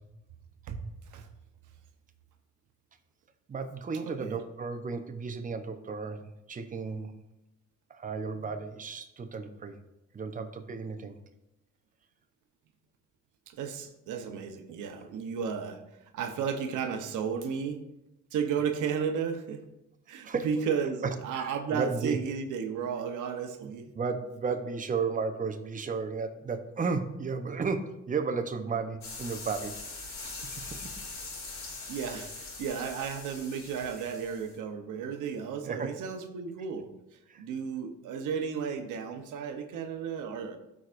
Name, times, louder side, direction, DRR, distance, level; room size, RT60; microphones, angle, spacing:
voice 1, 3.5-7.1 7.9-9.8 10.1-11.2 20.2-20.5 21.0-22.2 23.6-30.9 35.6-35.9 37.3-37.4, right 4 dB, 25° right, 7 dB, 0.7 m, -34 dB
voice 2, 4.0-4.4 13.5-17.8 18.3-19.6 20.1-23.9 31.6-36.9 37.4-40.6, right 6 dB, 85° right, 6 dB, 0.9 m, -33 dB
sound 1, 29.0-34.5, left 3 dB, 65° left, 2.8 m, -42 dB
12.5 x 4.7 x 2.5 m, 0.91 s
cardioid pair, 90°, 30 cm